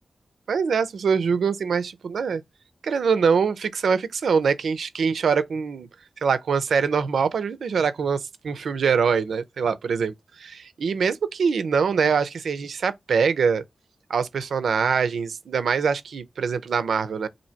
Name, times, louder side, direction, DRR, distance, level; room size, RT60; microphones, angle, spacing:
voice 1, 0.5-2.4 2.8-5.9 6.2-13.6 14.1-17.3, right 6 dB, 90° right, 0.4 m, -23 dB
2.7 x 2.6 x 4.3 m
cardioid pair, 45°, 0 cm